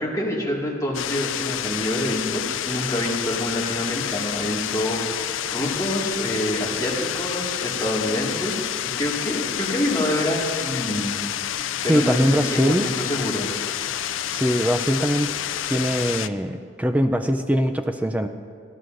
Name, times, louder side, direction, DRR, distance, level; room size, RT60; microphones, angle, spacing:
voice 1, 0.0-8.6 9.0-11.2 11.8-13.5, left 1 dB, 20° left, -4 dB, 2.0 m, -26 dB
sound 1, 0.9-16.3, left 11 dB, 85° left, 0.4 m, -29 dB
voice 2, 11.9-12.9 14.3-15.3 15.7-18.3, equal, 10° right, 7 dB, 0.4 m, -22 dB
28.5 x 11.0 x 2.6 m, 2.1 s
head